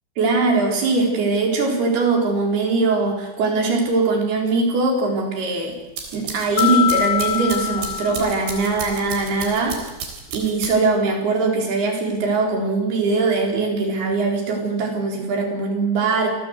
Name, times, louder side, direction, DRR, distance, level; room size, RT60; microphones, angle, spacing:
voice 1, 0.2-5.7 6.1-9.8 10.3-16.3, right 3 dB, 65° right, 2 dB, 6.4 m, -21 dB
sound 1, 5.7-11.0, right 5 dB, 90° right, 6.1 m, -34 dB
Mallet percussion, 6.6-9.0, left 12 dB, 70° left, 2.2 m, -24 dB
28.0 x 18.0 x 8.3 m, 0.98 s
omnidirectional pair, 4.9 m